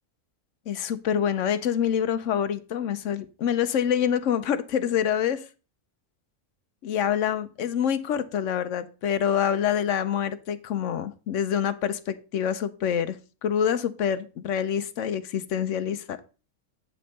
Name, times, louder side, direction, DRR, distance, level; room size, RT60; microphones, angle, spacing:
voice 1, 0.7-5.5 6.8-16.2, left 8 dB, 70° left, 1.0 m, -26 dB
8.5 x 5.4 x 4.0 m
omnidirectional pair, 1.4 m